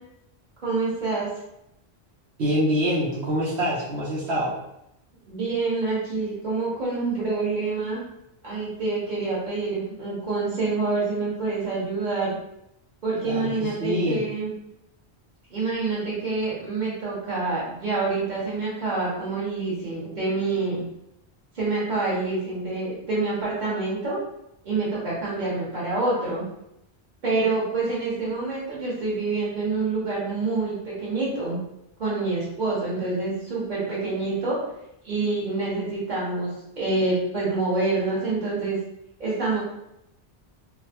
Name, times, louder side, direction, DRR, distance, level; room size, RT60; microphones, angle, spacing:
voice 1, 0.6-1.3 5.3-8.0 8.4-12.4 13.0-14.5 15.5-20.8 21.5-24.2 24.6-26.5 27.2-31.6 32.0-34.6 35.0-38.8 39.2-39.6, right 3 dB, 45° right, -8 dB, 1.5 m, -27 dB
voice 2, 2.4-4.5 13.2-14.2, equal, 80° right, -7 dB, 1.1 m, -25 dB
3.6 x 2.2 x 2.9 m, 0.82 s
omnidirectional pair, 1.1 m